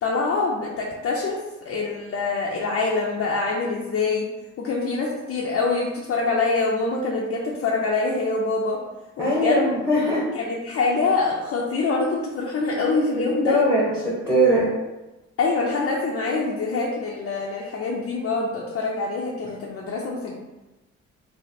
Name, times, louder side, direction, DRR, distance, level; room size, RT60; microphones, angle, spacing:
voice 1, 0.0-1.4 1.6-4.3 4.6-8.8 9.2-9.7 10.3-13.6 15.4-20.3, left 3 dB, 50° left, -3 dB, 0.6 m, -25 dB
voice 2, 9.2-10.2 13.1-14.7, equal, 10° right, -9 dB, 1.1 m, -21 dB
3.1 x 2.1 x 4.1 m, 1.1 s
cardioid pair, 90°, 30 cm